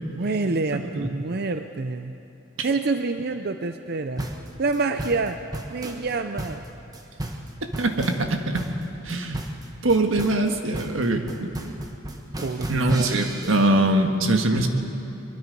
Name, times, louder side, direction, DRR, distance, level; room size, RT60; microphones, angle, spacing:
voice 1, 0.2-2.1 2.6-4.3 4.6-5.4 5.7-6.6 11.7-11.8 12.4-13.6, right 3 dB, 55° right, 7 dB, 0.6 m, -27 dB
voice 2, 0.7-1.1 2.6-2.7 7.6-8.6 9.0-9.4 9.8-11.5 12.7-14.7, right 2 dB, 85° right, 4 dB, 1.7 m, -23 dB
sound 1, 4.2-13.7, right 1 dB, 20° right, 1.3 m, -35 dB
22.5 x 22.5 x 5.4 m, 2.9 s
head